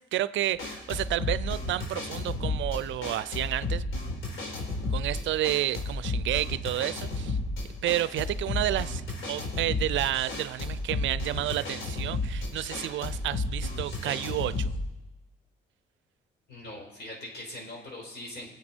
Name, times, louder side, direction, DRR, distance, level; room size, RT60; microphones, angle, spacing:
voice 1, 0.0-3.8 4.9-7.4 7.8-9.0 9.3-14.7, right 13 dB, 70° right, 17 dB, 0.5 m, -30 dB
sound 1, 0.5-14.8, left 2 dB, 80° left, 4.3 m, -32 dB
voice 2, 16.5-18.5, left 1 dB, 60° left, -1 dB, 4.7 m, -41 dB
22.0 x 8.1 x 4.5 m, 1.0 s
cardioid pair, 90°, 20 cm